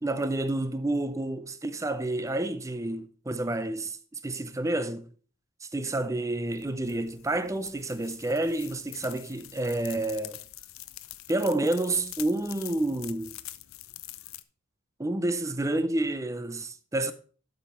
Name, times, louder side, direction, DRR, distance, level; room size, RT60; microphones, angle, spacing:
voice 1, 0.0-5.1 5.6-10.4 11.3-13.3 15.0-17.1, right 2 dB, 15° right, 0.5 m, -29 dB
sound 1, 6.5-14.4, left 15 dB, 75° left, 0.6 m, -45 dB
12.0 x 5.4 x 4.2 m
head